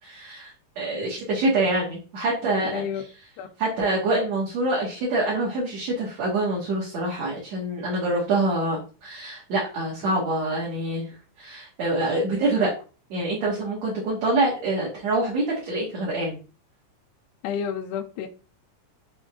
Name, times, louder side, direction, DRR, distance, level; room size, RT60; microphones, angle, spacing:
voice 1, 0.0-3.0 3.6-11.1 11.4-12.7 13.1-16.4, right 2 dB, 45° right, 3.1 m, -26 dB
voice 2, 2.7-3.0 3.4-3.5 17.4-18.3, left 8 dB, 80° left, 2.9 m, -30 dB
11.5 x 4.3 x 3.9 m
omnidirectional pair, 4.7 m